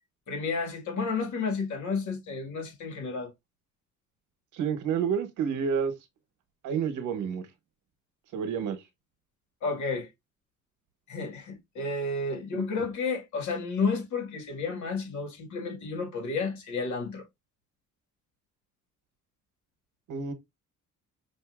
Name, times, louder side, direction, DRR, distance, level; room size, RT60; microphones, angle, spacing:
voice 1, 0.3-3.3 9.6-10.1 11.1-17.2, left 4 dB, 70° left, 2.0 m, -31 dB
voice 2, 4.5-5.9 6.6-7.5 8.3-8.8 12.5-12.6 20.1-20.3, right 7 dB, 80° right, 1.1 m, -29 dB
5.3 x 2.7 x 2.4 m
cardioid pair, 90°, 30 cm